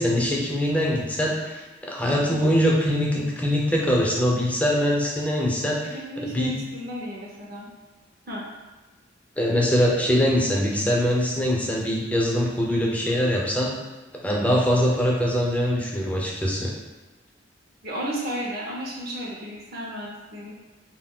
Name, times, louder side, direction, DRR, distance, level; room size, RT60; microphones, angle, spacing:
voice 1, 0.0-6.5 9.4-13.7 14.2-16.7, equal, 5° left, -3 dB, 0.4 m, -23 dB
voice 2, 5.9-7.7 8.3-8.4 17.8-20.5, right 1 dB, 55° right, -4 dB, 0.6 m, -33 dB
2.2 x 2.2 x 3.6 m, 1.2 s
head